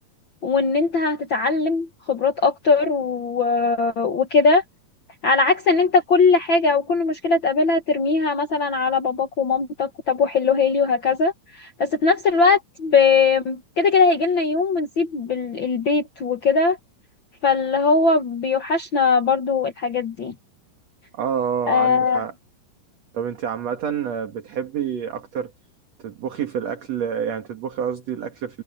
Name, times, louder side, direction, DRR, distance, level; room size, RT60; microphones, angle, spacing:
voice 1, 0.4-4.6 5.2-16.8 17.4-20.3 21.7-22.2, left 4 dB, 55° left, 1.4 m, -20 dB
voice 2, 21.1-22.3 23.1-25.5 26.0-28.6, right 8 dB, 55° right, 2.8 m, -28 dB
omnidirectional pair, 4.0 m